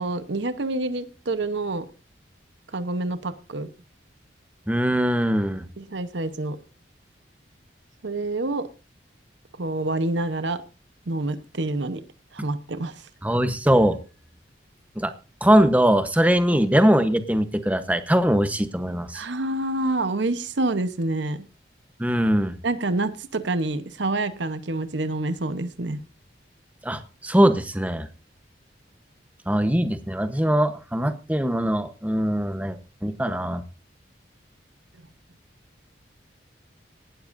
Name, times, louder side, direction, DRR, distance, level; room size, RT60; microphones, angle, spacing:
voice 1, 0.0-1.9 2.7-3.7 5.8-6.6 8.0-8.7 9.6-10.6 11.1-12.0 12.3-13.1 16.5-16.6 19.1-21.5 22.6-26.0, right 2 dB, 75° right, 11 dB, 1.0 m, -27 dB
voice 2, 4.7-5.6 13.2-14.0 15.0-15.1 15.4-19.2 22.0-22.5 26.8-28.1 29.5-33.6, equal, 10° right, 10 dB, 0.9 m, -21 dB
18.0 x 12.5 x 2.6 m, 0.32 s
head